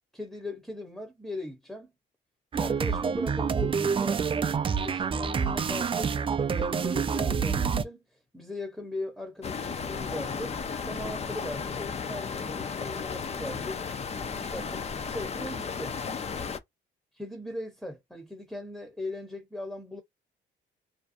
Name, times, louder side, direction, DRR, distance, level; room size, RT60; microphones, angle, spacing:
voice 1, 0.1-1.9 2.5-4.3 4.8-10.6 10.8-16.0 17.2-20.0, left 1 dB, ahead, 0.8 m, -39 dB
sound 1, 2.5-7.8, right 6 dB, 25° right, 0.3 m, -27 dB
sound 2, 9.4-16.6, left 5 dB, 35° left, 0.5 m, -34 dB
2.5 x 2.1 x 2.5 m
cardioid pair, 90°, 20 cm